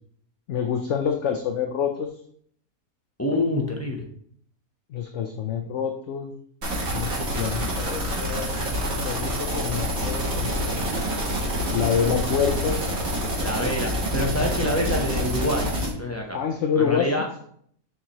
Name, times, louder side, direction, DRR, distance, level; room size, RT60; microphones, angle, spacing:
voice 1, 0.5-2.1 4.9-6.3 6.9-8.6 9.0-11.0 11.7-12.8 16.3-17.2, left 7 dB, 65° left, 4 dB, 0.9 m, -27 dB
voice 2, 3.2-4.1 13.4-16.4 16.8-17.3, left 1 dB, 15° left, 0 dB, 0.6 m, -27 dB
sound 1, 6.6-15.9, equal, 70° right, 2.0 m, -27 dB
7.1 x 4.7 x 3.0 m, 0.63 s
omnidirectional pair, 1.5 m